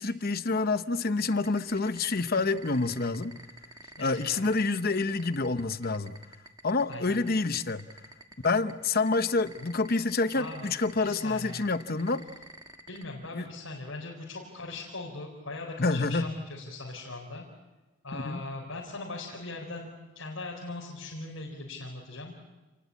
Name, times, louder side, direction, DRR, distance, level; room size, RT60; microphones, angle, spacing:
voice 1, 0.0-3.4 4.0-6.2 6.6-7.9 8.4-12.3 13.3-13.5 15.8-16.3 18.1-18.4, left 3 dB, 45° left, 12 dB, 0.9 m, -28 dB
sound 1, 1.1-13.0, right 1 dB, 20° right, 1.4 m, -48 dB
voice 2, 3.7-4.4 6.9-7.2 10.3-10.7 11.0-11.6 12.9-17.4 18.0-22.3, left 2 dB, 80° left, -2 dB, 4.2 m, -40 dB
28.5 x 19.5 x 8.5 m, 1.1 s
head